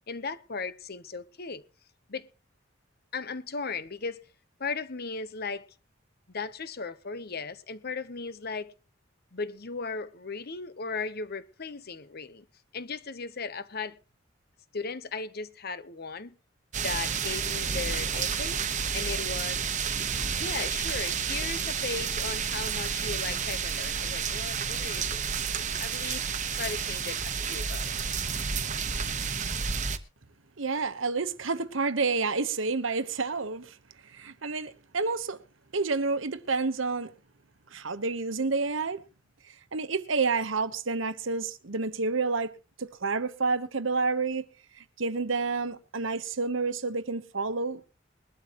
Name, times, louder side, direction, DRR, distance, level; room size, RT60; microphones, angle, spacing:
voice 1, 0.1-1.6 2.1-2.3 3.1-4.2 4.6-5.7 6.3-8.7 9.3-12.4 12.7-14.0 14.7-16.4 16.8-18.6 18.9-19.7 20.3-25.3 25.6-26.2 26.5-27.9, left 4 dB, 50° left, 1.0 m, -36 dB
sound 1, 16.7-30.0, right 6 dB, 40° right, 1.1 m, -30 dB
voice 2, 30.6-33.7 34.1-35.4 35.7-37.1 37.7-39.0 39.7-42.5 42.8-44.5 44.8-47.9, right 4 dB, 75° right, 1.1 m, -29 dB
21.5 x 12.0 x 3.0 m
head